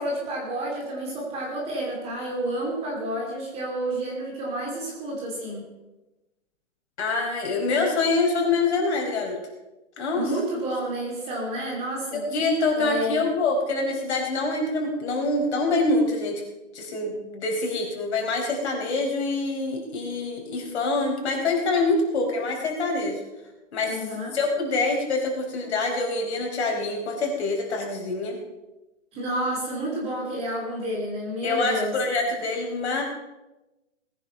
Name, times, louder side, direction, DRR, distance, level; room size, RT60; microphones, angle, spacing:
voice 1, 0.0-5.6 10.1-12.2 12.8-13.2 23.9-24.3 29.1-32.0, right 1 dB, 15° right, -2 dB, 2.9 m, -30 dB
voice 2, 7.0-9.4 10.0-10.3 12.1-16.4 16.7-23.2 23.7-24.0 24.3-28.4 31.4-33.0, left 3 dB, 55° left, 0 dB, 4.8 m, -25 dB
19.5 x 9.9 x 5.5 m, 1.0 s
hypercardioid pair, 170°, 38 cm